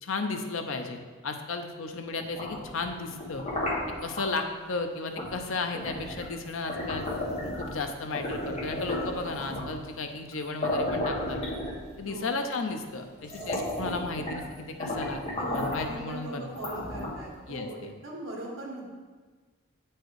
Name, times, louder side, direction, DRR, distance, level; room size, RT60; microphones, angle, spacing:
voice 1, 0.0-3.4 4.0-7.1 7.4-11.4 12.0-16.5 17.5-17.9, left 3 dB, 80° left, 6 dB, 0.7 m, -34 dB
sound 1, 2.2-4.3 5.2-5.4 5.7-7.8 8.1-9.8 10.3-10.4 10.6-12.1 12.8-12.9 13.2-14.5 14.8-15.9 16.5-17.3, left 1 dB, 30° left, 1.3 m, -33 dB
voice 2, 12.0-12.4 13.4-13.7 15.3-18.9, right 1 dB, 70° right, -2 dB, 1.8 m, -40 dB
7.9 x 4.5 x 4.8 m, 1.4 s
head